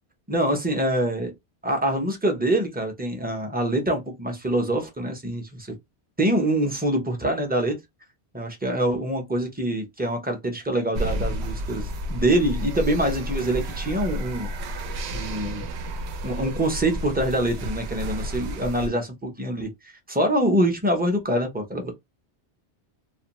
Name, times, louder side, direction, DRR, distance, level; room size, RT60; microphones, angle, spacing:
voice 1, 0.3-1.3 1.6-5.8 6.2-7.7 8.3-15.7 16.2-19.7 20.1-21.9, right 1 dB, 10° right, 0.5 m, -25 dB
sound 1, 10.9-18.9, equal, 80° right, 0.8 m, -31 dB
2.5 x 2.1 x 2.9 m
omnidirectional pair, 1.1 m